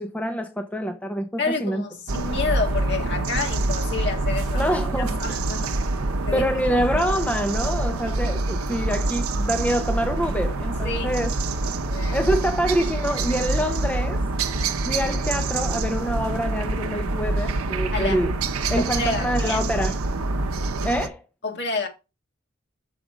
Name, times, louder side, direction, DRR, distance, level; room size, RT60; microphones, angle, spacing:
voice 1, 0.0-1.8 4.6-5.2 6.3-11.3 12.1-14.2 14.9-18.3 18.7-20.0 20.8-21.2, equal, 5° left, 0.5 m, -26 dB
voice 2, 1.4-5.9 6.3-6.5 10.8-11.2 11.9-12.2 17.9-18.3 18.7-19.6 21.4-21.9, left 4 dB, 50° left, 1.6 m, -29 dB
sound 1, 2.1-21.1, right 2 dB, 85° right, 0.7 m, -26 dB
6.3 x 5.0 x 4.8 m
head